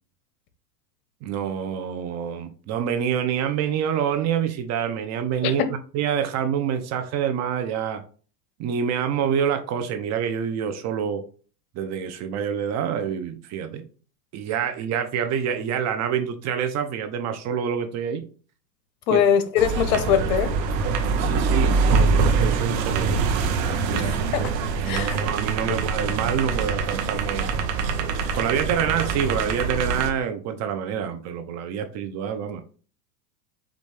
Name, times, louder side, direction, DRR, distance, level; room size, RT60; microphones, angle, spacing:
voice 1, 1.2-8.0 8.6-11.2 11.7-13.8 14.3-18.3 19.1-19.2 21.1-23.2 23.6-24.5 24.8-27.5 28.4-32.8, right 8 dB, 35° right, 0.5 m, -27 dB
voice 2, 19.1-20.5 23.9-24.5 24.9-25.2, left 8 dB, 60° left, 0.8 m, -22 dB
sound 1, 19.6-30.1, right 4 dB, 75° right, 1.0 m, -24 dB
5.3 x 2.5 x 3.2 m
hypercardioid pair, 105°, 50 cm